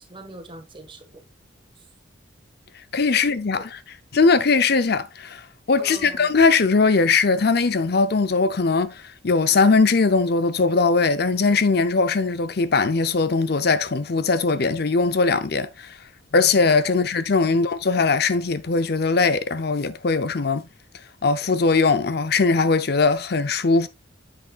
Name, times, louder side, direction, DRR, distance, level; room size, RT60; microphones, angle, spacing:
voice 1, 0.1-1.2 3.1-3.6 5.8-6.3 16.8-17.0 17.5-17.6, right 2 dB, 25° right, 1.6 m, -42 dB
voice 2, 2.9-3.8 4.1-5.4 5.7-16.0 16.3-20.7 21.2-23.9, left 4 dB, 50° left, 0.6 m, -20 dB
9.6 x 7.8 x 2.4 m
head